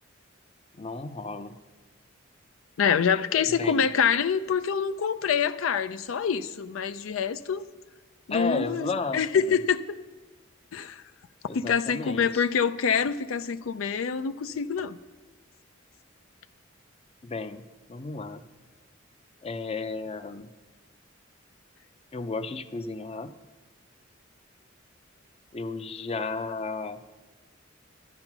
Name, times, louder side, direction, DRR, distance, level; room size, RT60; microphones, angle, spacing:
voice 1, 0.7-1.6 3.5-3.9 8.3-9.2 9.5-9.6 11.5-12.5 17.2-18.4 19.4-20.5 22.1-23.3 25.5-27.0, left 3 dB, 30° left, 0.5 m, -33 dB
voice 2, 2.8-7.6 8.3-10.0 10.7-11.0 11.5-15.0, left 6 dB, 90° left, 0.4 m, -26 dB
12.0 x 8.8 x 6.0 m
head